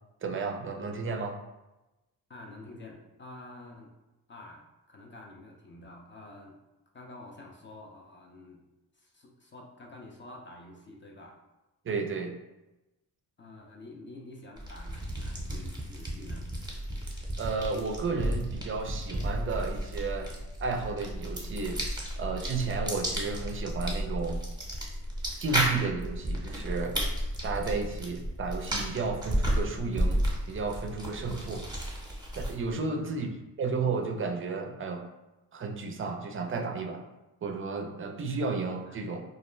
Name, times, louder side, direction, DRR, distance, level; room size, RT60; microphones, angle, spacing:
voice 1, 0.2-1.4 11.8-12.3 17.4-20.3 20.6-21.8 22.2-24.4 25.4-27.0 27.4-31.7 32.4-33.3 33.6-35.0 35.5-37.0 37.4-39.2, right 4 dB, 30° right, 4 dB, 0.4 m, -32 dB
voice 2, 2.3-3.9 4.3-6.6 6.9-8.6 8.9-11.4 13.4-16.5 32.9-33.5 38.9-39.0, left 2 dB, 30° left, 0 dB, 0.4 m, -48 dB
sound 1, 14.6-32.7, equal, 10° right, 0.8 m, -33 dB
2.3 x 2.1 x 3.1 m, 1.0 s
supercardioid pair, 65°, 42 cm